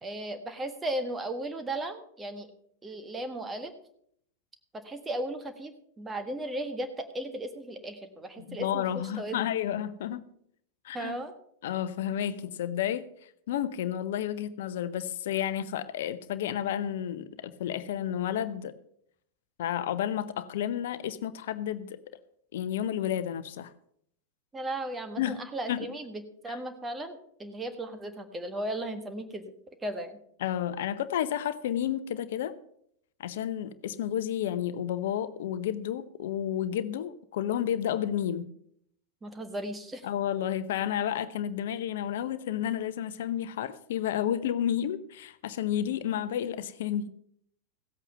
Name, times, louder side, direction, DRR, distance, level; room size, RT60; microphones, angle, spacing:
voice 1, 0.0-2.5 2.8-3.7 4.7-5.7 6.0-9.4 10.9-11.3 24.5-29.5 29.8-30.2 39.2-40.1, right 1 dB, 15° right, 1.4 m, -36 dB
voice 2, 8.4-10.3 10.8-11.2 11.6-13.1 13.5-18.7 19.6-22.0 22.5-23.7 25.2-25.9 30.4-32.5 33.2-38.5 40.0-47.1, left 10 dB, 55° left, 0.8 m, -31 dB
16.0 x 8.2 x 5.5 m
figure-of-eight pair, 90°, 0 cm